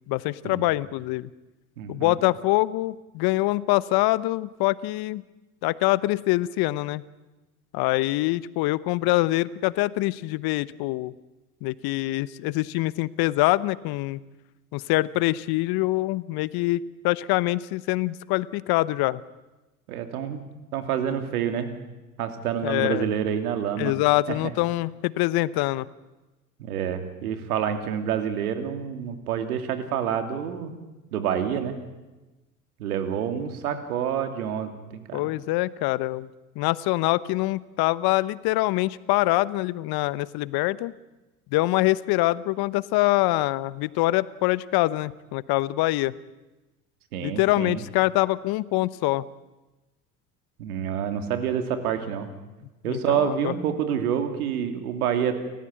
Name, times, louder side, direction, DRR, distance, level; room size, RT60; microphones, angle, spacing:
voice 1, 0.1-1.3 1.9-5.2 5.6-7.0 7.7-11.1 11.6-14.2 14.7-19.2 22.6-23.1 23.8-25.9 35.1-36.3 36.6-40.9 41.5-46.1 47.2-49.2 52.9-53.5, left 18 dB, 55° left, 18 dB, 1.0 m, -24 dB
voice 2, 1.8-2.2 19.9-20.4 20.7-21.8 22.2-23.9 24.3-24.4 26.6-30.7 31.1-31.8 32.8-35.3 47.1-47.8 50.6-52.3 52.8-55.3, right 8 dB, 80° right, 7 dB, 2.8 m, -28 dB
30.0 x 14.5 x 8.8 m, 1.1 s
hypercardioid pair, 75°, 44 cm